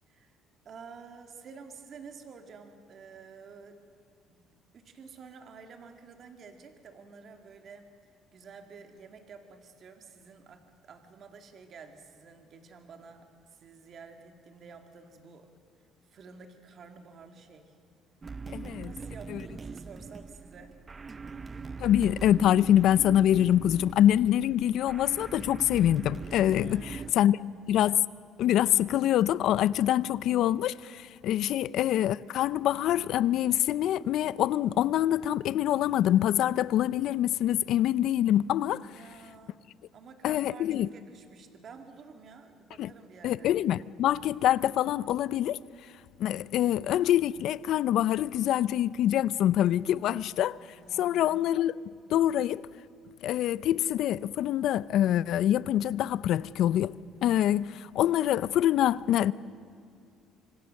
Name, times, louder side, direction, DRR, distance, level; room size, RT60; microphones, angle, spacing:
voice 1, 0.1-0.4 0.6-3.8 4.3-4.5 4.7-7.9 8.3-15.5 15.8-17.8 18.6-20.8 26.6-27.5 31.5-31.6 38.9-39.6 39.9-43.6 46.3-46.5 50.8-51.4 57.5-57.6, right 5 dB, 45° right, 2.3 m, -50 dB
sound 1, 18.2-27.1, right 4 dB, 25° right, 0.5 m, -41 dB
voice 2, 18.5-18.9 19.3-19.4 21.8-27.4 27.7-28.0 28.4-38.8 40.2-40.9 42.8-42.9 43.2-45.6 46.2-50.6 51.0-51.7 52.1-52.7 53.2-56.9 57.2-59.3, left 12 dB, 65° left, 0.6 m, -25 dB
25.5 x 25.0 x 6.5 m
cardioid pair, 120°, 0 cm